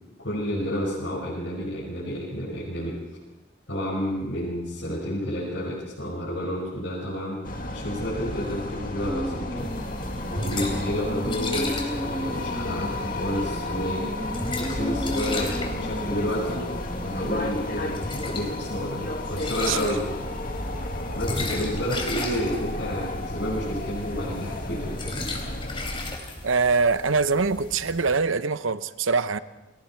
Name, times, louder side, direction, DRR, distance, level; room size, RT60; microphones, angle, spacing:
voice 1, 0.2-3.0 3.7-7.4 7.7-9.7 10.3-16.8 17.0-18.0 18.2-20.0 21.1-24.9, equal, 70° left, 5.7 m, -30 dB
sound 1, 7.4-26.2, left 2 dB, 45° left, 2.1 m, -33 dB
sound 2, 9.0-17.5, equal, 5° right, 1.8 m, -35 dB
sound 3, 9.6-28.2, left 2 dB, 25° left, 3.5 m, -36 dB
voice 2, 26.4-29.4, right 4 dB, 80° right, 0.8 m, -23 dB
30.0 x 21.5 x 4.5 m
head